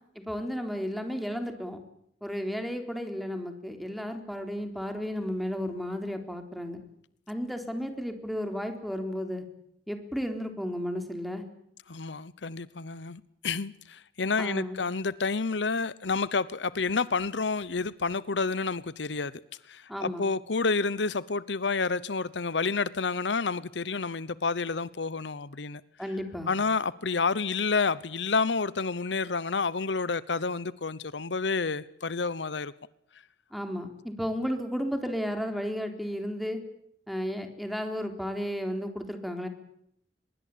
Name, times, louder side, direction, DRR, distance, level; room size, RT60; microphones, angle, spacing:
voice 1, 0.2-1.8 2.2-6.8 7.3-9.5 9.9-11.4 14.4-14.8 19.9-20.2 26.0-26.5 33.5-36.6 37.1-39.5, equal, ahead, 3.8 m, -33 dB
voice 2, 11.9-19.3 19.7-25.8 26.5-32.7, left 4 dB, 85° left, 0.9 m, -29 dB
23.5 x 22.5 x 8.6 m
head